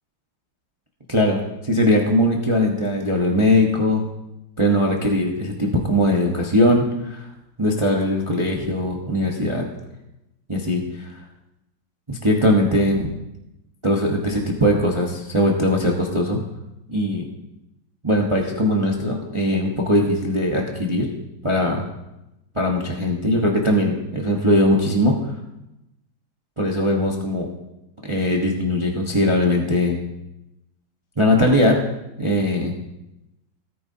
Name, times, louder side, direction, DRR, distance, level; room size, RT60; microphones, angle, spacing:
voice 1, 1.1-4.0 4.6-7.3 7.6-9.7 10.5-11.1 12.1-13.1 13.8-16.4 16.9-17.2 18.0-21.1 21.4-21.8 22.5-25.3 26.6-27.5 28.0-30.0 31.2-31.8 32.2-32.7, left 1 dB, 20° right, 0 dB, 0.9 m, -20 dB
17.5 x 9.2 x 2.8 m, 0.92 s
omnidirectional pair, 2.1 m